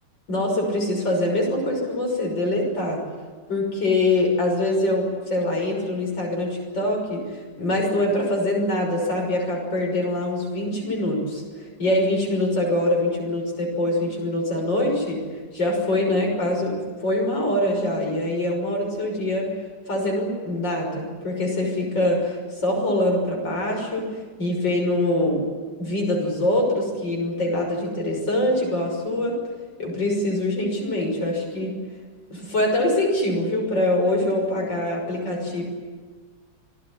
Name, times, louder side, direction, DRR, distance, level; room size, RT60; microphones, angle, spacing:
voice 1, 0.3-3.0 3.5-15.2 15.5-16.7 17.0-19.5 19.9-24.1 24.4-25.4 25.8-29.4 29.8-31.8 32.3-35.6, left 1 dB, 75° left, 0 dB, 6.8 m, -24 dB
27.5 x 20.0 x 10.0 m, 1.5 s
omnidirectional pair, 2.0 m